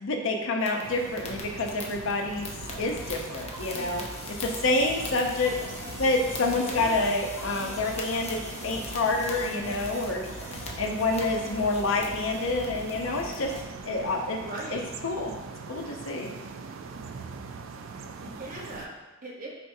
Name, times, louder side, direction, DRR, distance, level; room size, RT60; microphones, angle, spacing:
voice 1, 0.0-2.5 2.8-4.0 4.4-5.5 6.0-10.3 10.8-13.5 13.9-14.4 14.7-15.3 15.7-16.3, left 2 dB, 70° left, 2 dB, 0.6 m, -28 dB
sound 1, 0.6-13.6, left 3 dB, 30° left, 0.6 m, -43 dB
sound 2, 0.8-18.9, right 4 dB, 75° right, 0.4 m, -42 dB
sound 3, 2.2-13.6, equal, 15° left, 1.5 m, -43 dB
voice 2, 6.5-7.1 14.3-14.9 18.2-19.5, right 1 dB, 40° right, -4 dB, 0.9 m, -39 dB
4.5 x 4.2 x 2.7 m, 1.1 s
head